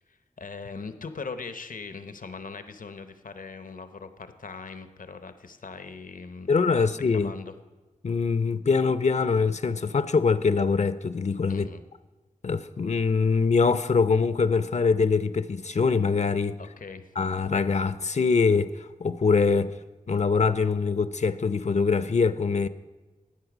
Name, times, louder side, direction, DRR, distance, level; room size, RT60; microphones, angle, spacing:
voice 1, 0.1-6.9 7.1-7.5 11.5-11.8 16.6-17.1, left 4 dB, 85° left, 0.8 m, -40 dB
voice 2, 6.5-7.3 8.0-11.7 12.4-16.6 17.2-18.7 19.0-19.8 20.1-22.7, left 4 dB, 55° left, 0.5 m, -23 dB
13.0 x 9.2 x 6.0 m
wide cardioid pair, 60°, 14 cm